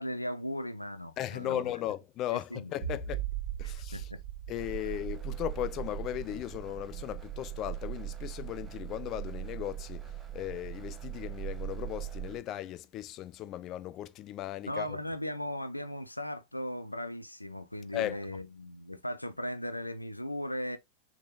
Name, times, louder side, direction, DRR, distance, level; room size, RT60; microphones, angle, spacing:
voice 1, 0.0-1.6 2.3-3.0 3.6-4.2 4.8-4.9 14.6-20.8, left 1 dB, 85° left, 0.5 m, -38 dB
voice 2, 1.2-3.2 3.6-4.1 4.5-14.9 17.9-18.2, left 13 dB, 35° left, 0.5 m, -37 dB
sound 1, 2.8-10.0, right 10 dB, 60° right, 1.0 m, -41 dB
sound 2, 4.6-12.4, right 12 dB, 20° right, 0.9 m, -40 dB
6.2 x 3.7 x 2.3 m
figure-of-eight pair, 90°, 0 cm